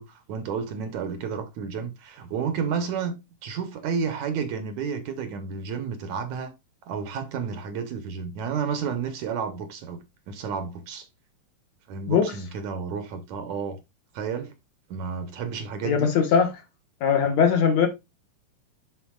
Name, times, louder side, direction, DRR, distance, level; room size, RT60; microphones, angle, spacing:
voice 1, 0.0-3.1 3.4-6.5 6.9-10.0 10.3-11.1 11.9-13.8 14.1-14.5 14.9-16.1, right 6 dB, 70° right, 1.9 m, -31 dB
voice 2, 15.8-16.5 17.0-17.9, left 7 dB, 65° left, 2.0 m, -20 dB
12.0 x 4.0 x 2.3 m
omnidirectional pair, 3.8 m